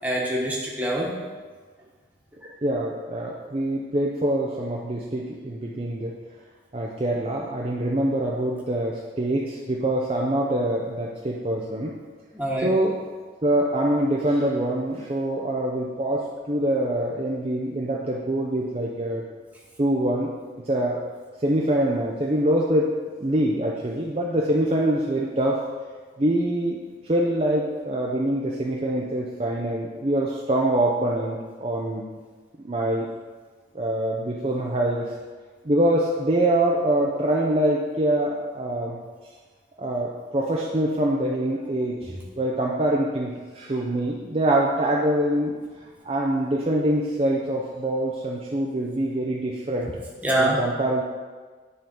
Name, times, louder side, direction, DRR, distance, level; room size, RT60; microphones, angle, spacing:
voice 1, 0.0-1.1 2.4-2.5 12.3-12.7 41.6-41.7 42.0-42.2 50.2-50.6, right 1 dB, 10° right, -4 dB, 1.3 m, -25 dB
voice 2, 2.6-6.1 6.7-11.9 12.6-12.9 13.4-19.2 19.8-20.3 20.7-21.0 21.4-25.6 26.2-26.8 27.0-32.0 32.6-33.1 33.7-35.1 35.7-39.0 39.8-45.5 46.0-49.9 50.4-51.0, right 1 dB, 30° right, -2 dB, 0.5 m, -24 dB
10.0 x 3.7 x 5.3 m, 1.5 s
head